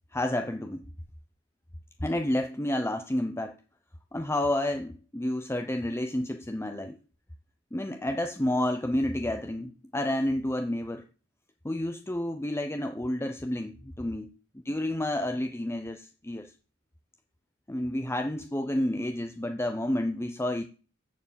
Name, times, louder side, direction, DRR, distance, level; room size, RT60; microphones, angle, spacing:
voice 1, 0.1-0.9 2.0-3.6 4.1-7.0 7.7-11.0 11.6-14.3 14.6-16.5 17.7-20.7, left 1 dB, 15° left, 6 dB, 0.8 m, -30 dB
13.5 x 4.8 x 8.8 m, 0.37 s
head